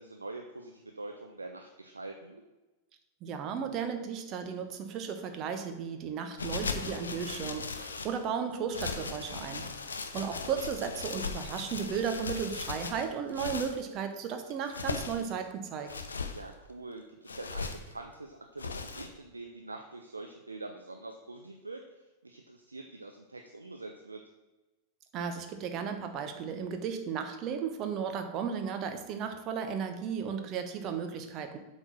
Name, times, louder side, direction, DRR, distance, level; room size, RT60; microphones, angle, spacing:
voice 1, 0.0-2.4 10.4-10.5 16.3-24.2, right 2 dB, 80° right, 4 dB, 0.6 m, -45 dB
voice 2, 3.2-9.7 10.1-15.9 25.1-31.6, right 7 dB, 35° right, 7 dB, 1.0 m, -35 dB
sound 1, 6.4-8.2 8.7-13.8 14.5-15.3 15.9-16.4 17.3-17.9 18.6-19.1, left 4 dB, 75° left, 0.6 m, -38 dB
7.9 x 4.5 x 6.0 m, 1.1 s
figure-of-eight pair, 90°, 0 cm